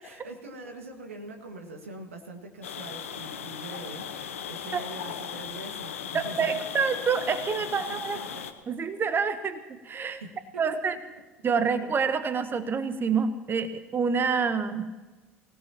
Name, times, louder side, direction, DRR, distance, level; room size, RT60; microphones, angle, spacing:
voice 1, 0.0-6.6 8.3-8.4 10.0-10.6, right 2 dB, 85° right, 4 dB, 1.9 m, -43 dB
sound 1, 2.6-8.5, left 8 dB, 80° left, 1.1 m, -37 dB
voice 2, 6.1-8.2 8.7-9.6 9.8-10.2 10.6-10.9 11.4-14.9, right 5 dB, 30° right, 11 dB, 1.0 m, -27 dB
25.5 x 17.0 x 3.0 m, 1.2 s
figure-of-eight pair, 65°, 7 cm